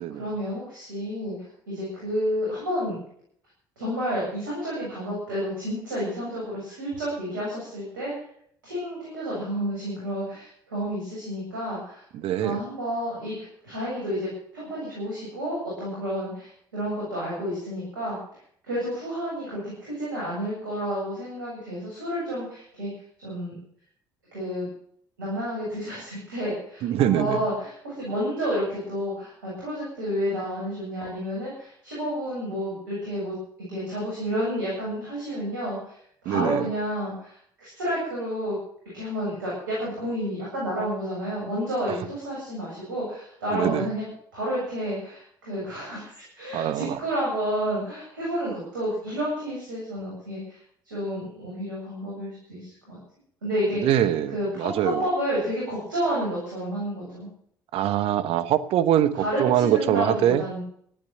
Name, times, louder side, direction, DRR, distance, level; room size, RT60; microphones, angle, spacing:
voice 1, 0.2-3.0 3.8-8.1 8.6-12.0 12.4-18.2 18.6-22.9 23.2-23.5 24.3-24.7 25.2-36.0 36.2-38.6 38.9-50.6 50.8-53.0 53.4-54.0 54.3-57.3 59.2-60.6, equal, 90° right, -5 dB, 7.9 m, -30 dB
voice 2, 12.1-12.6 26.8-27.4 36.2-36.6 43.5-43.9 46.5-47.0 53.8-55.0 57.7-60.4, right 11 dB, 65° right, 13 dB, 1.2 m, -23 dB
14.5 x 12.0 x 8.0 m, 0.64 s
hypercardioid pair, 55°, 10 cm